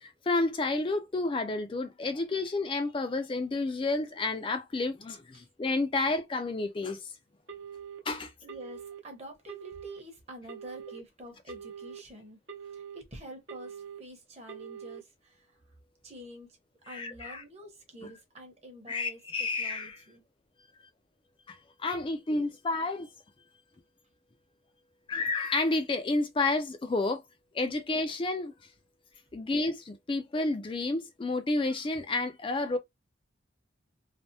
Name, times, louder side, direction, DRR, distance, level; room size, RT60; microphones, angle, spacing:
voice 1, 0.0-7.1 8.1-8.3 16.9-17.4 18.0-18.1 18.9-20.0 21.5-23.1 25.1-27.2 27.5-28.5 29.3-32.8, left 2 dB, 25° left, 0.3 m, -30 dB
Telephone, 7.5-8.0 8.5-9.0 9.5-10.0 10.5-11.0 11.5-12.0 12.5-13.0 13.5-14.0 14.5-15.0, right 7 dB, 70° right, 0.8 m, -43 dB
voice 2, 8.4-12.4 12.7-15.5 16.0-16.5 16.9-20.2, equal, 30° right, 0.8 m, -47 dB
3.3 x 2.0 x 2.7 m
head